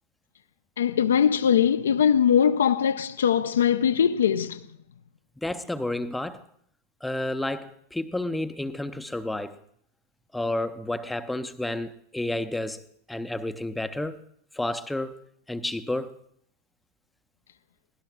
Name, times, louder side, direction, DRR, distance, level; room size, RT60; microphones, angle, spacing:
voice 1, 0.8-4.6, left 8 dB, 65° left, 0.5 m, -21 dB
voice 2, 5.4-6.4 7.0-9.6 10.3-12.8 13.1-14.2 14.5-15.2 15.5-16.1, left 1 dB, 5° left, 0.6 m, -30 dB
23.5 x 17.0 x 2.3 m
figure-of-eight pair, 90°, 0 cm